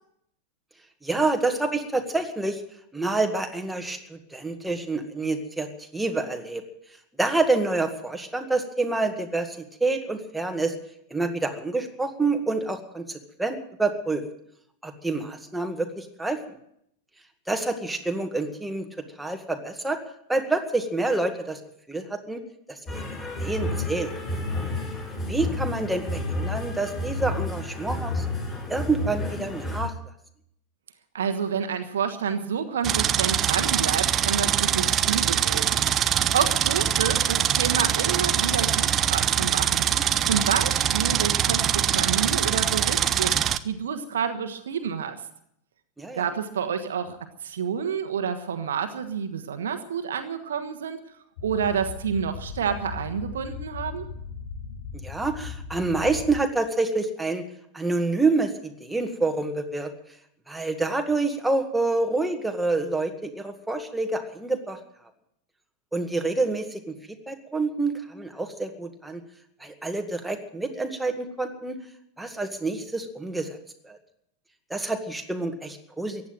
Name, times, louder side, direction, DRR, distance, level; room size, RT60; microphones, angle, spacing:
voice 1, 1.0-2.6 2.9-6.6 7.2-10.7 11.1-14.2 14.8-16.6 17.5-18.9 19.2-20.0 20.3-21.6 21.9-22.4 22.7-23.0 23.4-24.1 25.3-28.3 28.7-29.9 39.9-40.0 46.0-46.3 55.0-57.4 57.7-59.9 60.5-64.8 65.9-66.9 67.3-69.2 69.6-71.8 72.2-73.6 73.8-74.0 74.7-76.2, right 3 dB, 5° right, 4 dB, 1.9 m, -27 dB
sound 1, 22.9-29.8, left 2 dB, 20° left, 6.2 m, -30 dB
voice 2, 31.1-43.3 43.6-45.2 46.1-47.2 47.4-51.0 51.4-54.0, right 7 dB, 65° right, 7 dB, 1.4 m, -29 dB
sound 2, 32.8-43.6, right 9 dB, 30° right, 0.7 m, -23 dB
sound 3, 51.4-56.4, left 5 dB, 55° left, 1.8 m, -38 dB
15.0 x 10.5 x 9.1 m, 0.74 s
figure-of-eight pair, 90°, 0 cm